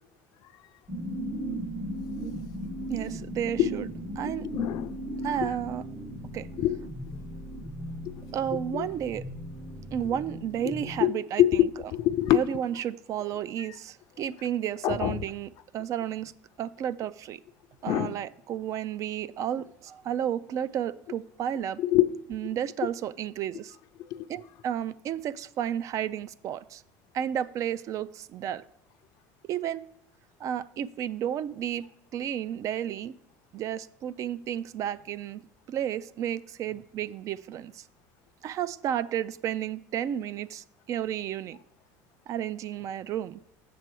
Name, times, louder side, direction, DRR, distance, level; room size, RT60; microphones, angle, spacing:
sound 1, 0.9-11.0, right 1 dB, 10° right, 0.7 m, -37 dB
voice 1, 2.9-3.9 4.2-4.5 5.2-5.8 6.3-6.5 8.3-9.3 9.9-11.7 12.3-16.3 16.6-17.4 17.8-21.8 22.3-23.8 24.3-26.8 27.1-28.6 29.4-29.9 30.4-33.2 33.5-35.4 35.7-37.9 38.4-41.6 42.3-43.4, right 10 dB, 45° right, 0.3 m, -32 dB
voice 2, 4.5-5.0 5.4-5.5 6.6-6.8 8.1-8.2 8.7-8.8 11.0-11.1 11.4-11.7 11.9-12.4 14.8-15.2 17.9-18.1 21.8-22.1 24.1-24.3, left 13 dB, 60° left, 0.5 m, -24 dB
7.6 x 6.7 x 4.6 m
cardioid pair, 125°, 8 cm